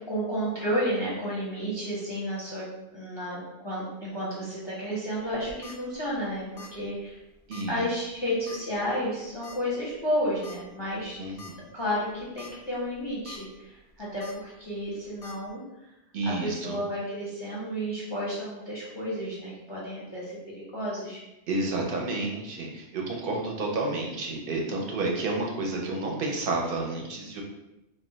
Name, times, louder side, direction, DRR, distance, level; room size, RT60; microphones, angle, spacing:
voice 1, 0.1-2.7 2.9-7.2 7.7-11.2 11.7-15.6 16.3-21.2, equal, 30° left, -7 dB, 0.5 m, -32 dB
sound 1, 5.3-5.8 6.6-6.8 7.1-7.2 7.5-7.7 8.5-8.8 9.4-9.6 10.4-10.6 11.0-11.1 11.4-11.5 12.2-12.5 12.9-13.4 14.2-14.3 15.2-15.3, left 4 dB, 90° left, 0.9 m, -44 dB
voice 2, 7.5-7.8 11.1-11.6 16.1-16.8 21.5-27.4, right 2 dB, 60° right, 0 dB, 0.7 m, -30 dB
2.1 x 2.1 x 3.7 m, 0.95 s
omnidirectional pair, 1.1 m